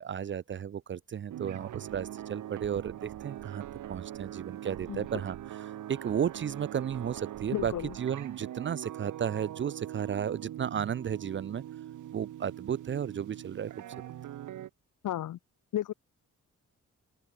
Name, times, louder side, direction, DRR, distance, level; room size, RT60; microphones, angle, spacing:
voice 1, 0.0-11.6 12.1-13.8, right 8 dB, 40° right, 0.6 m, -34 dB
sound 1, 1.3-14.7, right 12 dB, 75° right, 1.2 m, -42 dB
voice 2, 7.5-7.9 15.0-15.4 15.7-15.9, left 12 dB, 85° left, 1.4 m, -33 dB
open air
wide cardioid pair, 175°, 30 cm